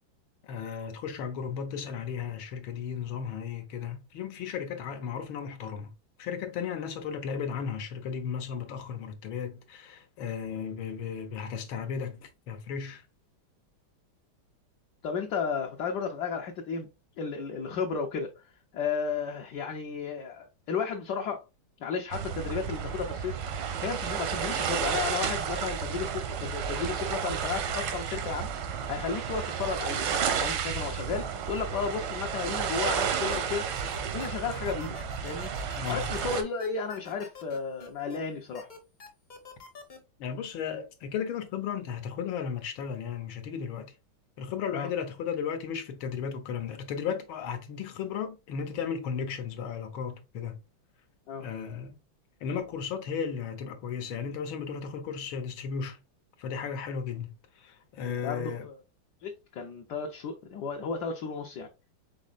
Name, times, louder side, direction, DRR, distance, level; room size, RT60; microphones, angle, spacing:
voice 1, 0.4-5.9 6.2-13.0 35.8-36.1 40.2-44.0 44.4-50.6 51.4-52.0 52.4-56.0 56.4-58.7, left 7 dB, 85° left, 1.6 m, -35 dB
voice 2, 15.0-16.9 17.2-18.3 18.7-21.4 21.8-23.4 23.8-28.5 28.9-33.7 34.1-35.5 35.9-38.7 44.7-44.9 51.3-51.5 58.1-58.8 59.2-61.7, left 5 dB, 65° left, 1.2 m, -33 dB
sound 1, 22.1-36.4, right 7 dB, 85° right, 1.6 m, -32 dB
sound 2, 32.7-33.4 33.7-38.2 38.5-40.0, left 4 dB, 35° left, 0.7 m, -47 dB
5.2 x 4.1 x 2.4 m
omnidirectional pair, 2.2 m